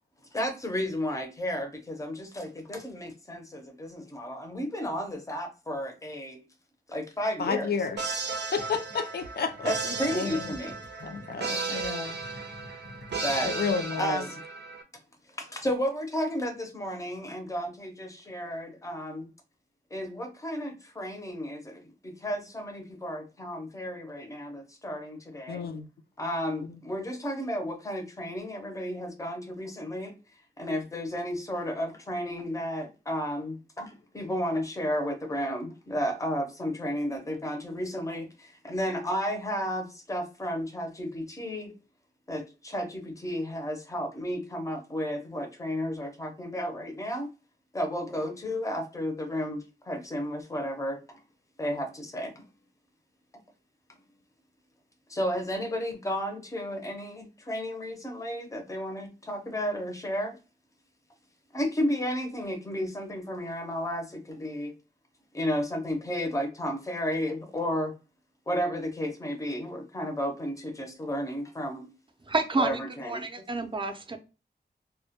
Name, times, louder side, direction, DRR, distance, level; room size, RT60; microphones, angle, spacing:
voice 1, 0.3-6.4 6.9-7.7 9.6-10.7 13.2-13.5 14.0-14.4 15.4-19.3 19.9-25.6 26.2-30.2 30.6-41.7 42.3-47.3 47.7-51.2 51.6-52.3 55.1-60.4 61.5-64.8 65.3-67.9 68.5-71.9 72.6-73.2, equal, 20° left, 0.5 m, -33 dB
voice 2, 7.4-8.2 8.5-10.5 11.0-12.2 13.4-14.2 25.5-25.9 26.7-26.8, left 5 dB, 65° left, 0.4 m, -32 dB
sound 1, 8.0-14.8, right 4 dB, 85° right, 0.5 m, -35 dB
sound 2, 8.6-13.7, left 2 dB, 85° left, 1.0 m, -49 dB
voice 3, 72.2-74.2, right 3 dB, 30° right, 0.4 m, -29 dB
2.1 x 2.1 x 2.7 m
wide cardioid pair, 120°, 17 cm